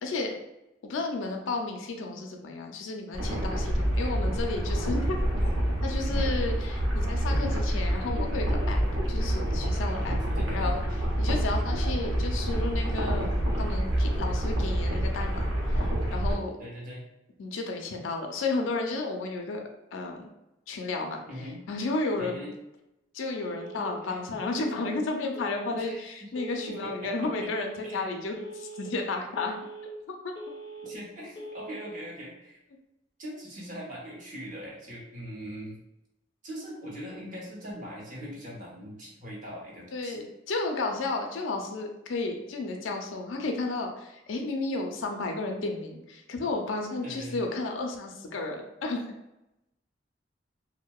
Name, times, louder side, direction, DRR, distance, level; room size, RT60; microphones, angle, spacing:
voice 1, 0.0-0.3 0.8-5.2 5.8-8.8 9.1-10.2 10.5-10.8 11.2-13.3 13.6-16.6 17.4-19.6 19.9-20.2 20.7-21.2 21.7-22.4 23.1-29.6 30.1-30.3 39.9-49.1, left 3 dB, 85° left, 3 dB, 0.4 m, -32 dB
sound 1, 3.1-16.3, equal, 80° right, 0.7 m, -27 dB
voice 2, 10.0-10.7 16.6-17.0 21.3-21.7 22.2-22.5 23.8-24.2 25.7-26.3 26.7-27.6 27.8-28.1 30.8-32.6 33.2-35.8 36.4-40.2 47.0-47.4, equal, 45° right, -3 dB, 0.7 m, -41 dB
Telephone, 23.4-23.9 24.4-24.9 25.4-25.9 26.4-26.9 27.4-27.9 28.4-28.9 29.4-29.9 30.4-30.9 31.4-31.9, right 1 dB, 25° left, 0.5 m, -41 dB
2.7 x 2.1 x 2.3 m, 0.91 s
head